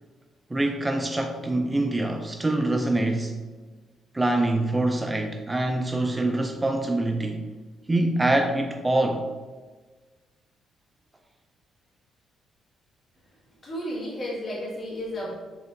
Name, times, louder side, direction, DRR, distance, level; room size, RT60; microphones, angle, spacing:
voice 1, 0.5-3.3 4.1-7.5 7.9-9.3, right 2 dB, 15° right, 4 dB, 0.3 m, -25 dB
voice 2, 13.6-15.4, equal, 40° left, -4 dB, 1.5 m, -32 dB
4.2 x 3.7 x 2.4 m, 1.4 s
cardioid pair, 90°, 0 cm